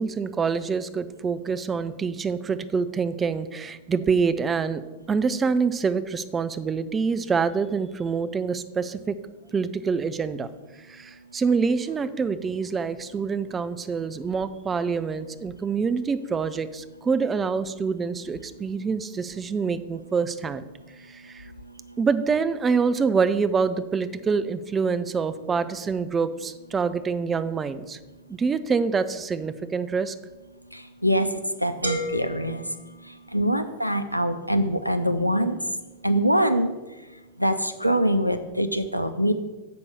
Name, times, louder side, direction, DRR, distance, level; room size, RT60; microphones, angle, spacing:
voice 1, 0.0-4.8 5.1-9.2 9.5-10.5 10.9-20.6 21.1-21.5 22.0-28.0 28.3-30.1, right 5 dB, 20° right, 12 dB, 0.4 m, -26 dB
voice 2, 30.7-31.3 31.6-32.6 33.3-35.6 36.0-36.7 37.4-39.3, equal, 90° left, 9 dB, 0.5 m, -23 dB
sound 1, 31.8-33.7, right 1 dB, 75° right, 1.1 m, -34 dB
6.8 x 5.3 x 6.3 m, 1.2 s
figure-of-eight pair, 90°, 0 cm